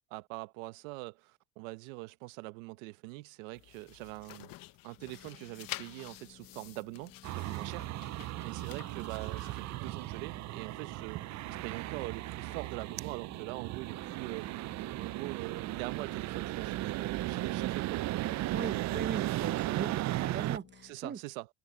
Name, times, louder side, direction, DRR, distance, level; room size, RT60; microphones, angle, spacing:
voice 1, 0.1-4.5 4.8-11.2 11.6-14.7 15.0-18.0 20.8-21.5, right 23 dB, 90° right, 1.2 m, -43 dB
sound 1, 3.5-9.6, left 16 dB, 60° left, 0.9 m, -49 dB
sound 2, 5.0-20.9, left 9 dB, 40° left, 1.8 m, -59 dB
sound 3, 7.2-20.6, right 16 dB, 45° right, 0.5 m, -36 dB
voice 2, 18.5-21.2, right 6 dB, 30° right, 1.0 m, -39 dB
supercardioid pair, 90°, 38 cm